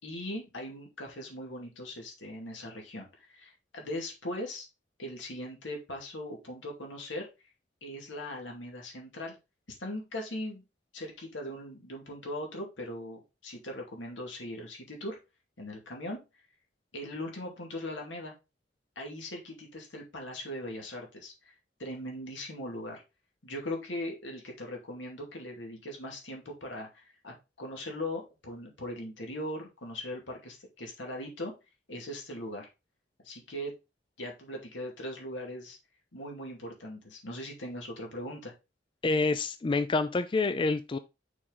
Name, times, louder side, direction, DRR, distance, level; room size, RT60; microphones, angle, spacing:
voice 1, 0.0-4.7 5.0-7.3 7.8-9.4 9.8-10.6 10.9-15.2 15.6-16.2 16.9-18.3 19.0-21.5 21.8-23.0 23.4-31.5 31.9-32.7 33.2-33.7 34.2-35.8 36.1-38.5, left 1 dB, 85° left, 2.4 m, -39 dB
voice 2, 39.0-41.0, left 3 dB, 25° left, 0.4 m, -27 dB
6.2 x 4.6 x 3.9 m
head